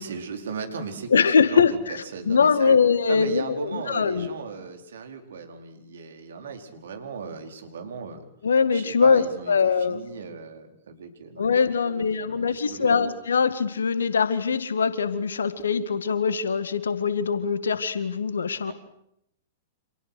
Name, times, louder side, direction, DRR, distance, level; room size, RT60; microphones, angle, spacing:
voice 1, 0.0-2.8 3.1-8.2 8.7-11.4 11.8-13.1 18.7-18.8, right 5 dB, 60° right, 5 dB, 4.5 m, -37 dB
voice 2, 1.1-4.3 8.4-10.0 11.4-18.7, left 5 dB, 70° left, 14 dB, 1.9 m, -22 dB
29.5 x 27.0 x 6.5 m, 0.77 s
figure-of-eight pair, 105°, 0 cm